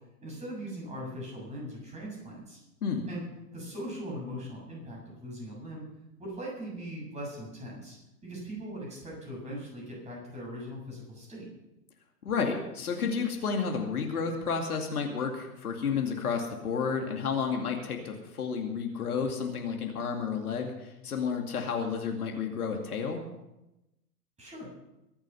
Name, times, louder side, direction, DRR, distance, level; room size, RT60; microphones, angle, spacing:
voice 1, 0.2-2.6 3.1-3.2 3.5-5.8 6.2-8.0 8.2-11.5 24.4-24.7, equal, 15° right, -3 dB, 7.6 m, -40 dB
voice 2, 12.2-20.7 21.0-23.2, left 6 dB, 65° left, 2 dB, 2.5 m, -31 dB
23.0 x 8.8 x 5.7 m, 0.93 s
figure-of-eight pair, 110°, 48 cm